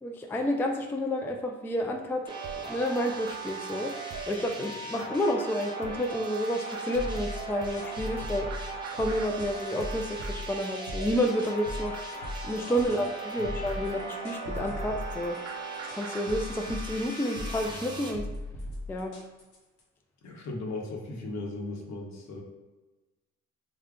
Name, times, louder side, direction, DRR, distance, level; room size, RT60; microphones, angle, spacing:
voice 1, 0.0-2.2 2.6-3.9 4.3-11.9 12.4-15.4 15.9-18.3 18.9-19.1, equal, 5° left, 2 dB, 0.3 m, -30 dB
sound 1, 2.3-18.1, right 2 dB, 15° right, 0.7 m, -41 dB
sound 2, 2.4-16.3, right 5 dB, 55° right, 0.5 m, -41 dB
sound 3, 7.0-19.8, left 1 dB, 90° left, 1.0 m, -39 dB
voice 2, 20.2-22.4, left 2 dB, 65° left, 0 dB, 0.9 m, -37 dB
3.6 x 2.1 x 3.6 m, 1.2 s
cardioid pair, 90°, 30 cm